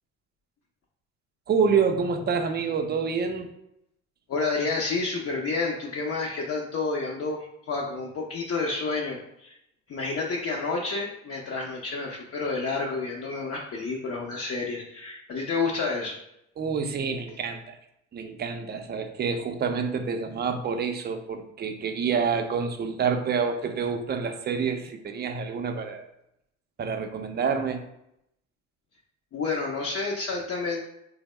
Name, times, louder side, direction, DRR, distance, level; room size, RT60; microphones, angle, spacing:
voice 1, 1.5-3.5 16.6-17.8 18.1-26.1 26.8-27.8, right 5 dB, 30° right, 6 dB, 0.5 m, -27 dB
voice 2, 4.3-9.6 9.9-16.2 29.3-30.8, left 3 dB, 40° left, -1 dB, 0.7 m, -30 dB
3.3 x 2.0 x 3.2 m, 0.81 s
hypercardioid pair, 65°, 36 cm